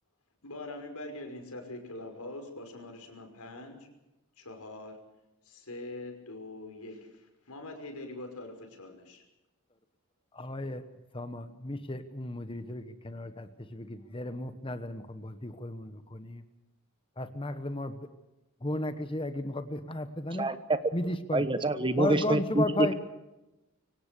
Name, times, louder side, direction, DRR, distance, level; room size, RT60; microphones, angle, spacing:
voice 1, 0.4-3.9 4.4-5.0 5.4-9.2, left 2 dB, 85° left, 4 dB, 5.6 m, -43 dB
voice 2, 10.3-10.8 11.1-16.4 17.2-18.0 18.6-20.5 20.9-21.4 22.0-22.9, left 1 dB, 25° left, 10 dB, 1.1 m, -34 dB
voice 3, 20.4-20.8 21.3-22.6, right 2 dB, 20° right, 11 dB, 1.2 m, -27 dB
24.5 x 17.5 x 6.8 m, 0.98 s
head